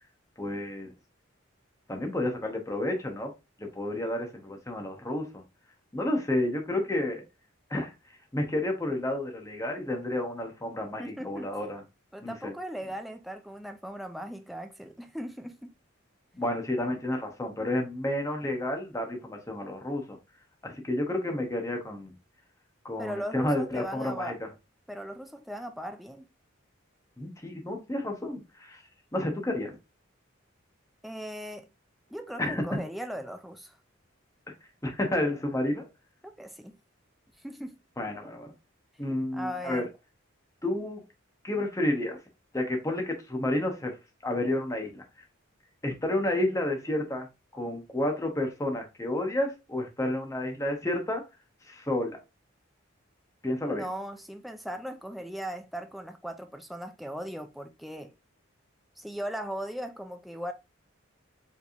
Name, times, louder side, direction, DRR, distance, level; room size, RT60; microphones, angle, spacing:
voice 1, 0.4-0.9 1.9-3.3 3.6-5.4 5.9-7.2 7.7-7.9 8.3-11.8 12.2-12.5 16.3-20.2 20.6-22.1 22.8-24.5 27.2-28.8 29.1-29.8 32.4-32.8 34.8-35.9 38.0-38.5 39.0-39.8 40.6-41.0 41.4-42.2 42.5-44.0 44.2-45.0 45.8-47.3 47.5-51.2 51.6-52.2 53.4-53.9, left 1 dB, 15° left, 0.8 m, -30 dB
voice 2, 11.0-11.5 12.1-15.7 23.0-24.4 24.9-26.3 31.0-31.7 32.1-33.8 36.2-36.8 37.4-37.8 39.1-39.9 53.7-58.1 59.0-60.5, equal, ahead, 0.3 m, -38 dB
4.9 x 3.3 x 2.5 m
head